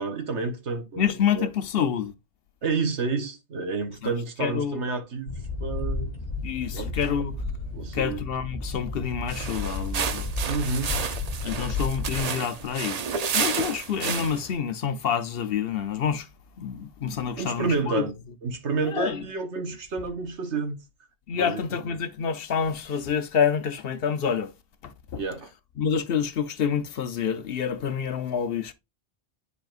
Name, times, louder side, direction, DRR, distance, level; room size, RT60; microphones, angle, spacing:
voice 1, 0.0-1.5 2.6-5.3 5.6-6.1 6.7-6.9 7.7-8.2 10.4-10.9 11.6-11.7 17.4-18.1 18.4-20.8 21.3-22.0 25.2-25.5, right 4 dB, 85° right, 1.4 m, -30 dB
voice 2, 1.0-2.1 4.0-4.1 4.4-4.8 6.4-7.4 7.9-10.5 11.4-13.0 13.3-16.3 16.6-18.0 18.9-19.2 21.3-24.5 24.8-25.2 25.8-28.7, left 7 dB, 60° left, 0.9 m, -27 dB
sound 1, 5.3-12.2, left 3 dB, 40° left, 1.5 m, -32 dB
sound 2, 9.3-14.5, right 6 dB, 45° right, 0.6 m, -31 dB
10.5 x 4.1 x 2.4 m
omnidirectional pair, 1.1 m